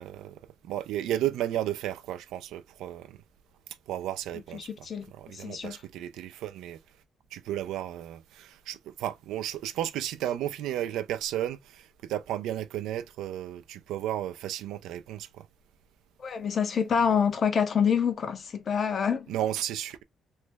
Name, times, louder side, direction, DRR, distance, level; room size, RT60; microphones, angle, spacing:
voice 1, 0.0-3.2 3.9-6.8 7.3-15.5 19.3-20.0, right 12 dB, 90° right, 0.3 m, -33 dB
voice 2, 4.5-5.1 5.3-5.8 16.2-19.3, left 7 dB, 50° left, 0.6 m, -26 dB
3.1 x 2.0 x 3.2 m
cardioid pair, 90°, 0 cm